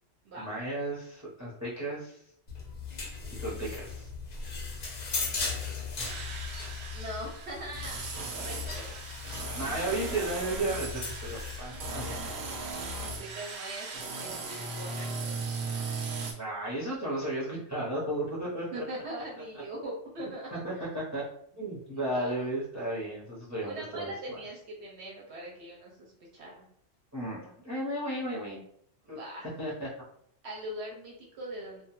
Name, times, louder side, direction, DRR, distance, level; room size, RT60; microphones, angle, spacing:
voice 1, 0.4-2.2 3.4-4.1 9.5-12.7 16.3-18.8 19.5-19.6 20.4-21.2 21.5-24.4 27.1-28.6 29.1-29.2 29.6-29.9, right 1 dB, 20° right, -6 dB, 0.5 m, -34 dB
sound 1, 2.5-13.2, left 5 dB, 65° left, 0.4 m, -38 dB
sound 2, 6.0-16.3, right 4 dB, 90° right, 1.0 m, -38 dB
voice 2, 6.9-8.9 13.0-15.6 18.7-20.9 22.1-22.4 23.6-26.7 29.0-29.5 30.4-31.8, right 1 dB, 65° right, -3 dB, 0.8 m, -42 dB
2.2 x 2.1 x 2.9 m, 0.65 s
omnidirectional pair, 1.3 m